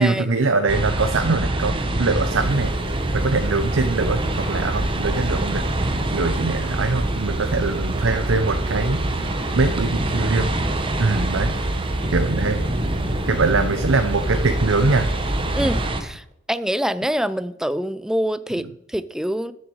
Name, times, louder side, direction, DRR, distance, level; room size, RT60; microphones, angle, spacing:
voice 1, 0.0-2.7 3.1-5.6 6.1-9.3 9.5-10.5 11.0-11.6 12.1-12.7 13.3-15.1, right 3 dB, 80° right, 7 dB, 0.8 m, -22 dB
sound 1, 0.7-16.0, right 1 dB, 25° right, 1.1 m, -25 dB
sound 2, 2.2-15.9, right 2 dB, 55° right, 1.8 m, -39 dB
voice 2, 15.5-19.5, equal, 5° right, 14 dB, 0.4 m, -25 dB
13.5 x 7.2 x 4.7 m, 0.82 s
head